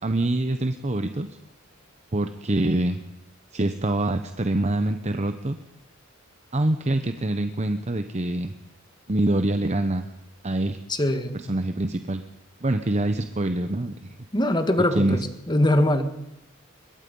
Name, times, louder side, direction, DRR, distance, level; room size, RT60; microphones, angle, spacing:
voice 1, 0.0-1.3 2.1-3.0 3.5-5.6 6.5-8.5 9.1-10.1 10.4-10.8 11.3-12.2 12.6-13.9 14.9-15.2, right 1 dB, 35° right, 9 dB, 0.9 m, -25 dB
voice 2, 10.9-11.5 14.3-15.2 15.5-16.0, left 1 dB, 20° left, 8 dB, 1.8 m, -22 dB
23.0 x 21.5 x 5.4 m, 0.89 s
head